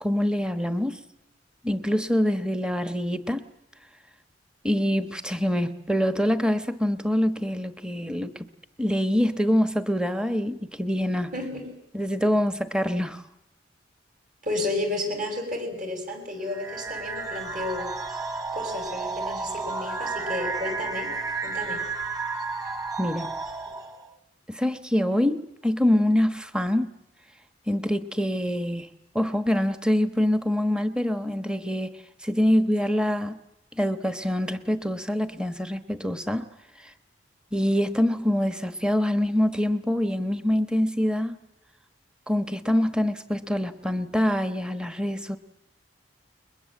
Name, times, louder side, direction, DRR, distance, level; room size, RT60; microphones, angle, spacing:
voice 1, 0.0-1.0 1.6-3.5 4.6-8.4 8.8-11.3 11.9-13.2 23.0-23.3 24.5-27.0 27.7-28.9 29.1-33.4 33.8-36.5 36.8-36.9 37.5-41.4 42.3-45.4, left 1 dB, 5° right, 1.2 m, -25 dB
voice 2, 11.3-11.7 14.4-17.9 18.5-21.2 21.4-21.8, left 2 dB, 45° right, 6.6 m, -32 dB
sound 1, 16.5-24.1, right 4 dB, 20° right, 2.5 m, -32 dB
30.0 x 22.0 x 7.6 m
head